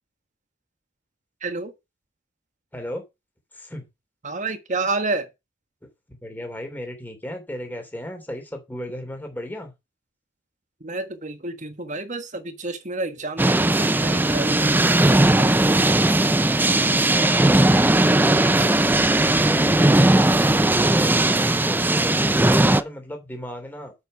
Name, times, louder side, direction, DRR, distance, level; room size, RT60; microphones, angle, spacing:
voice 1, 1.4-1.7 4.2-5.3 10.8-15.6, right 3 dB, 40° right, 1.5 m, -30 dB
voice 2, 2.7-3.0 3.5-3.9 6.1-9.7 17.1-23.9, left 1 dB, 10° left, 3.0 m, -34 dB
sound 1, 13.4-22.8, right 1 dB, 10° right, 0.5 m, -18 dB
7.9 x 6.9 x 5.4 m
head